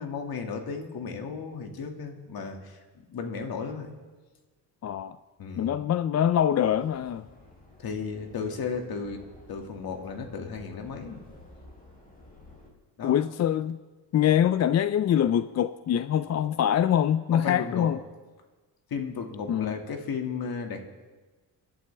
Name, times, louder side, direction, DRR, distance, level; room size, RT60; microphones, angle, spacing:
voice 1, 0.0-3.9 5.4-5.8 7.8-9.2 9.5-11.2 13.0-13.3 17.3-17.9 18.9-20.8, left 5 dB, 60° left, 3 dB, 2.2 m, -34 dB
voice 2, 4.8-5.2 5.6-7.2 13.0-13.8 14.1-18.0 19.5-19.7, left 10 dB, 40° left, 13 dB, 0.4 m, -24 dB
Subway metro underground, 6.6-12.7, left 1 dB, 20° left, 4.4 m, -52 dB
28.5 x 11.5 x 3.4 m, 1.3 s
cardioid pair, 100°, 40 cm